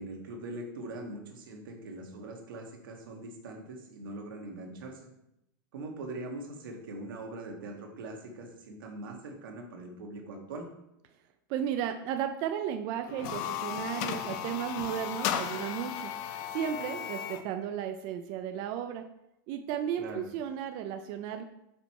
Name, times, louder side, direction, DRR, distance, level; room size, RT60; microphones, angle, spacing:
voice 1, 0.0-5.1 5.7-10.7 20.0-20.2, right 2 dB, 85° right, 1 dB, 1.5 m, -42 dB
voice 2, 11.5-16.1 16.5-19.0 19.5-21.4, right 9 dB, 35° right, 6 dB, 0.4 m, -34 dB
sound 1, 13.1-17.5, left 9 dB, 40° left, 0.5 m, -35 dB
5.2 x 4.2 x 4.6 m, 0.84 s
supercardioid pair, 160°, 11 cm